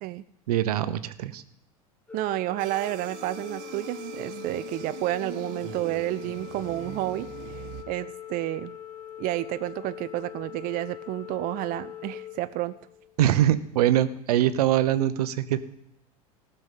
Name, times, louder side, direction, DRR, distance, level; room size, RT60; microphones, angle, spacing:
voice 1, 0.5-1.4 13.2-15.6, right 12 dB, 80° right, 13 dB, 0.8 m, -23 dB
Organ, 2.1-13.2, left 11 dB, 5° left, 1.3 m, -42 dB
voice 2, 2.1-8.7 9.2-12.8, right 16 dB, 45° right, 13 dB, 0.5 m, -31 dB
sound 1, 2.6-7.8, right 11 dB, 60° right, 1.3 m, -42 dB
15.0 x 6.8 x 7.4 m, 0.83 s
hypercardioid pair, 90°, 20 cm